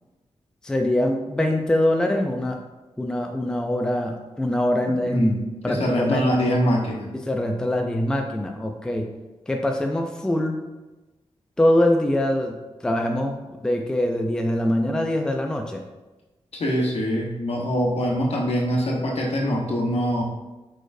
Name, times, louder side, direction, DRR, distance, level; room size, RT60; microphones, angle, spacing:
voice 1, 0.6-2.6 3.0-6.3 7.1-9.1 9.5-10.6 11.6-15.8, left 1 dB, 5° left, 3 dB, 0.4 m, -23 dB
voice 2, 5.0-5.3 5.7-7.1 16.5-20.2, equal, 70° left, -1 dB, 1.0 m, -23 dB
4.7 x 4.2 x 2.5 m, 1.1 s
wide cardioid pair, 115°, 11 cm